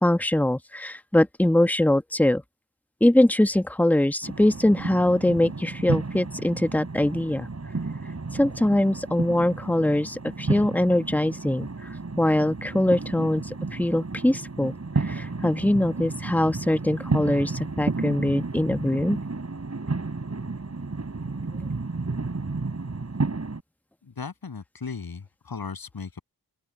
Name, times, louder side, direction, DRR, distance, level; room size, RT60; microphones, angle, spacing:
voice 1, 0.0-2.4 3.0-7.5 8.3-11.7 12.2-14.7 15.0-19.2, left 1 dB, 5° left, 1.2 m, -22 dB
sound 1, 4.2-23.6, right 3 dB, 40° right, 4.2 m, -32 dB
voice 2, 24.0-26.2, left 5 dB, 65° left, 7.7 m, -36 dB
open air
cardioid pair, 50°, 38 cm